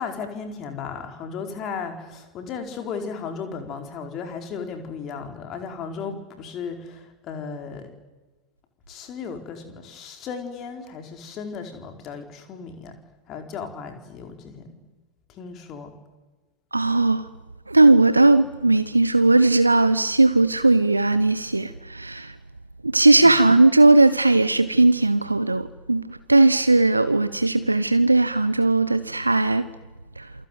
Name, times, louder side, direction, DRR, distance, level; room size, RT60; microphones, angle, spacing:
voice 1, 0.0-7.9 8.9-12.9 13.3-14.7 15.3-15.9 23.1-23.4, left 5 dB, 35° left, 4.7 m, -35 dB
voice 2, 16.7-17.2 17.7-22.3 22.9-29.7 30.2-30.3, right 2 dB, 80° right, 1.0 m, -18 dB
28.0 x 23.0 x 9.4 m
figure-of-eight pair, 90°, 0 cm